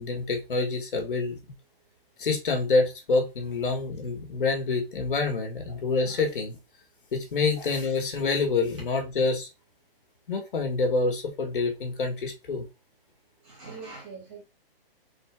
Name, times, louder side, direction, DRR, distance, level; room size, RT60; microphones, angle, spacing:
voice 1, 0.0-1.5 2.2-6.6 7.1-9.5 10.3-12.6, left 3 dB, 60° left, 1.7 m, -27 dB
voice 2, 13.4-14.4, right 4 dB, 15° right, 1.4 m, -43 dB
3.9 x 2.8 x 3.6 m
hypercardioid pair, 165°, 30 cm